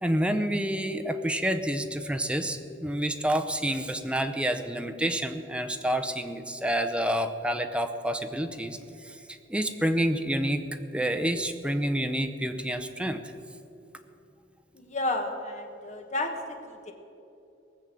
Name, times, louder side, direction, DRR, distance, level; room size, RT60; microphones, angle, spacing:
voice 1, 0.0-8.8 9.0-13.2, right 1 dB, 5° right, 6 dB, 0.7 m, -28 dB
voice 2, 14.7-16.9, left 2 dB, 40° left, 4 dB, 1.5 m, -32 dB
18.5 x 7.1 x 7.6 m, 2.8 s
head